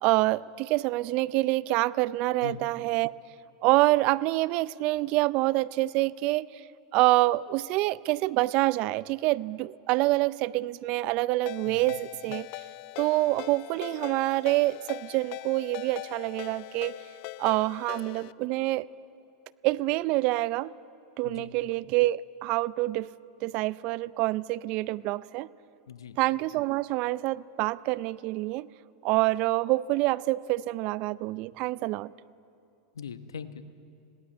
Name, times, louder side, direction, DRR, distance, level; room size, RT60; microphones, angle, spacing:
voice 1, 0.0-3.1 3.6-6.5 6.9-12.5 13.0-16.9 17.4-18.9 19.6-20.7 21.2-23.1 23.4-25.5 26.2-28.7 29.0-32.1, right 19 dB, 50° right, 19 dB, 0.5 m, -26 dB
Ringtone, 11.5-18.3, left 18 dB, 55° left, 0.5 m, -41 dB
voice 2, 25.9-26.2 32.9-33.6, left 7 dB, 90° left, 11 dB, 1.1 m, -41 dB
21.0 x 17.5 x 8.6 m, 2.5 s
hypercardioid pair, 100°, 2 cm